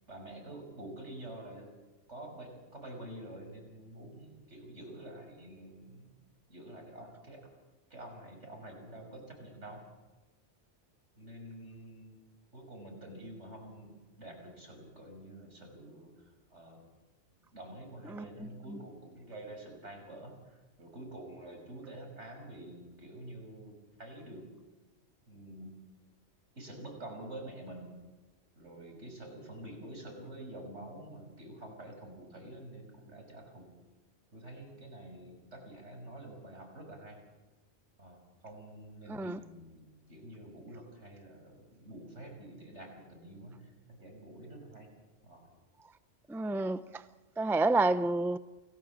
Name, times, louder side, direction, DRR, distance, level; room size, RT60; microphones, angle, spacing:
voice 1, 0.1-1.7 2.1-6.1 6.5-7.4 7.9-9.8 11.2-12.2 12.5-16.8 17.5-24.4 25.3-25.8 26.6-27.9 28.6-33.7 34.3-37.2 38.0-44.9 45.2-45.5, right 1 dB, 75° right, 6.5 m, -48 dB
voice 2, 39.1-39.4 46.3-46.8 47.4-48.4, right 2 dB, 5° right, 0.5 m, -28 dB
29.0 x 19.0 x 7.4 m
omnidirectional pair, 1.2 m